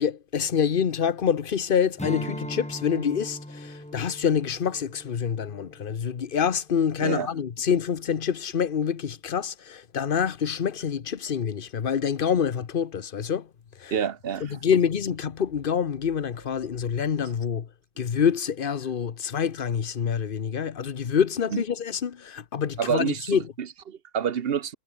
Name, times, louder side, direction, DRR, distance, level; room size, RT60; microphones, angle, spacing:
voice 1, 0.0-13.5 13.8-14.0 14.4-17.7 18.0-23.5, left 7 dB, 60° left, 1.1 m, -26 dB
Strum, 2.0-6.7, left 1 dB, 5° left, 1.6 m, -39 dB
voice 2, 13.9-14.5 21.5-21.6 22.8-24.7, right 8 dB, 70° right, 1.1 m, -28 dB
omnidirectional pair, 1.0 m